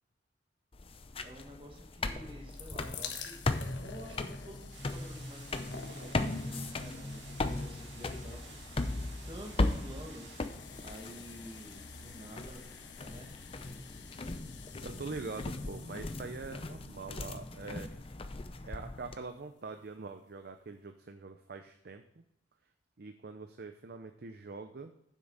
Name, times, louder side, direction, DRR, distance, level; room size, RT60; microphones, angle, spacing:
sound 1, 0.7-19.2, left 2 dB, 30° left, 0.6 m, -38 dB
voice 1, 1.2-3.5 3.8-10.4 10.8-12.6 13.1-13.3, equal, 30° right, 0 dB, 1.7 m, -50 dB
sound 2, 2.5-19.3 20.0-20.1 20.3-20.4, left 6 dB, 70° left, 1.2 m, -51 dB
sound 3, 4.7-10.5, right 4 dB, 75° right, 2.3 m, -53 dB
voice 2, 14.8-18.1 18.6-22.2 23.0-24.9, right 4 dB, 55° right, 7 dB, 0.6 m, -44 dB
9.5 x 7.5 x 3.9 m, 0.77 s
head